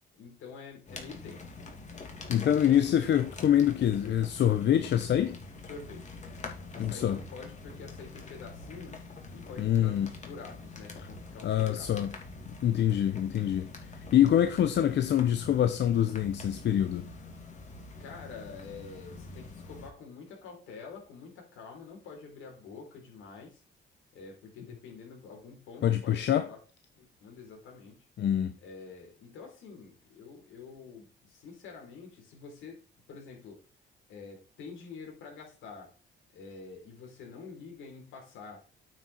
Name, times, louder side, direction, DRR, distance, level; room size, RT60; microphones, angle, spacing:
voice 1, 0.1-1.6 2.4-3.1 5.7-6.2 6.7-9.0 9.3-12.2 18.0-23.6 24.1-26.6 27.0-28.1 28.6-32.8 33.1-33.6 34.1-35.9 36.3-38.6, left 5 dB, 85° left, 4.3 m, -47 dB
sound 1, 0.9-19.9, left 3 dB, 35° left, 2.5 m, -45 dB
voice 2, 2.3-5.4 6.8-7.2 9.6-10.1 11.4-12.1 12.5-13.7 14.1-17.1 25.8-26.5 28.2-28.5, left 10 dB, 60° left, 0.8 m, -25 dB
8.9 x 6.3 x 4.5 m
cardioid pair, 90°, 20 cm